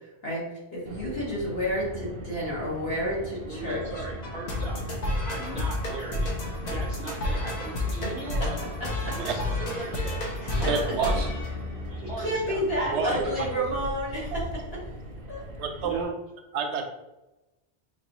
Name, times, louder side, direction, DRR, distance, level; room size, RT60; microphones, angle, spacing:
voice 1, 0.7-3.8 8.8-9.1 10.6-10.7 12.2-14.4 15.3-15.4, equal, 60° left, -6 dB, 1.7 m, -30 dB
Car, 0.8-16.0, right 1 dB, 50° right, 0.6 m, -39 dB
voice 2, 3.4-4.8 5.2-6.3 6.7-8.6 9.2-10.2 10.5-11.2 11.9-12.6 12.9-13.7 15.8-16.1, right 2 dB, 90° left, -5 dB, 1.6 m, -38 dB
sound 1, 3.7-12.3, left 2 dB, 45° left, 0.7 m, -31 dB
voice 3, 9.1-9.4 10.7-11.3 12.9-13.5 14.3-14.4 15.6-16.1 16.5-16.8, right 5 dB, 80° right, 4 dB, 0.9 m, -29 dB
4.3 x 2.6 x 3.0 m, 0.99 s
omnidirectional pair, 1.1 m